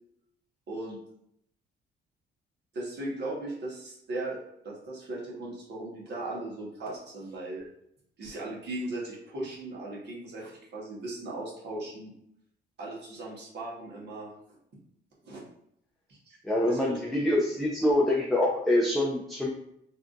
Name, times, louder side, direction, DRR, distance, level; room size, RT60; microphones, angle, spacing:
voice 1, 2.7-4.4 4.6-7.7 8.2-12.1 12.8-14.3 15.2-15.4 16.3-17.0, right 2 dB, 60° right, -5 dB, 1.4 m, -38 dB
voice 2, 16.4-19.5, left 1 dB, ahead, -3 dB, 0.5 m, -25 dB
3.4 x 2.6 x 2.5 m, 0.74 s
cardioid pair, 90°, 20 cm